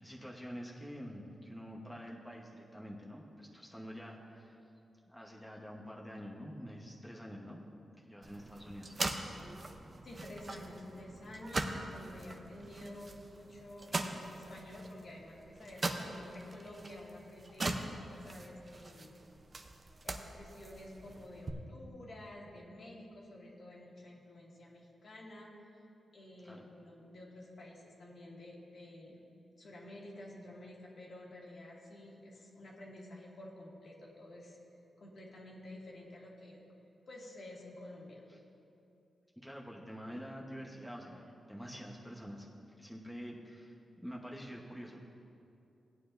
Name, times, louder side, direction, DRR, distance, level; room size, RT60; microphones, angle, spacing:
voice 1, 0.0-4.6 5.1-7.6 8.0-9.3 26.4-26.7 38.3-38.4 39.4-45.0, equal, ahead, -3 dB, 1.1 m, -47 dB
sound 1, 8.2-21.5, right 2 dB, 35° right, 0.7 m, -42 dB
voice 2, 10.0-17.7 18.2-19.1 20.0-25.5 26.1-29.2 29.6-34.6 35.0-36.6 37.1-38.3, left 1 dB, 60° left, -3 dB, 2.1 m, -50 dB
17.0 x 9.3 x 2.6 m, 2.7 s
wide cardioid pair, 95°, 0 cm